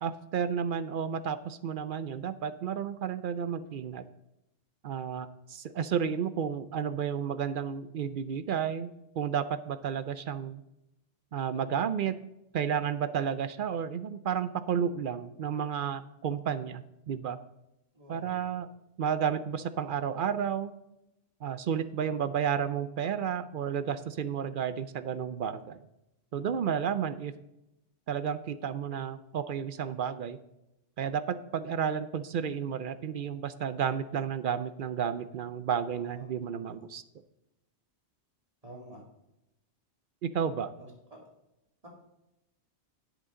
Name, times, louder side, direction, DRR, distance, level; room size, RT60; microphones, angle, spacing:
voice 1, 0.0-4.0 4.8-8.9 9.2-10.6 11.3-12.2 12.5-17.4 18.1-18.7 19.0-20.7 21.4-25.8 26.3-27.3 28.1-30.4 31.0-37.0 40.2-40.7, right 7 dB, 60° right, 13 dB, 0.6 m, -32 dB
voice 2, 17.9-18.6 35.9-36.8 38.6-39.0 40.6-41.2 41.8-41.9, right 1 dB, 30° right, -1 dB, 2.6 m, -50 dB
11.0 x 8.2 x 3.7 m, 0.90 s
omnidirectional pair, 1.2 m